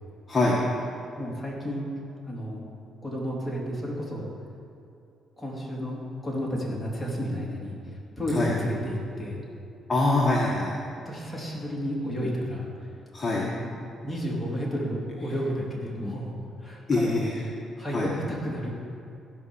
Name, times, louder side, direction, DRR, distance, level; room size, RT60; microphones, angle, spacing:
voice 1, 0.3-0.6 8.3-8.5 9.9-10.7 13.1-13.5 16.9-17.4 17.9-18.1, left 2 dB, 30° left, -4 dB, 1.7 m, -24 dB
voice 2, 1.2-1.9 2.3-2.7 3.0-4.3 5.4-9.4 11.0-13.0 13.3-13.7 14.0-17.2 17.8-18.7, equal, 10° left, -4 dB, 3.4 m, -32 dB
16.0 x 5.6 x 7.3 m, 2.7 s
cardioid pair, 90°, 0 cm